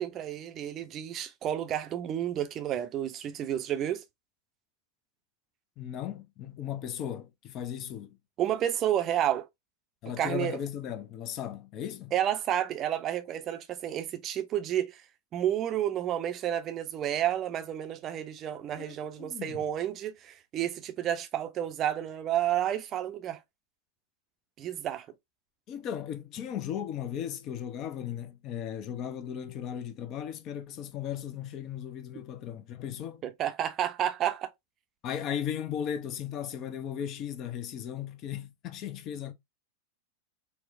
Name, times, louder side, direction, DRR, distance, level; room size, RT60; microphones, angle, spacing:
voice 1, 0.0-4.0 8.4-9.5 10.2-10.6 12.1-15.0 15.3-23.4 24.6-25.1 33.2-34.5, right 11 dB, 30° right, 0.5 m, -31 dB
voice 2, 5.8-8.2 10.0-12.1 18.8-19.6 25.7-33.2 35.0-39.3, left 9 dB, 35° left, 0.4 m, -36 dB
4.2 x 2.0 x 2.5 m
figure-of-eight pair, 90°, 0 cm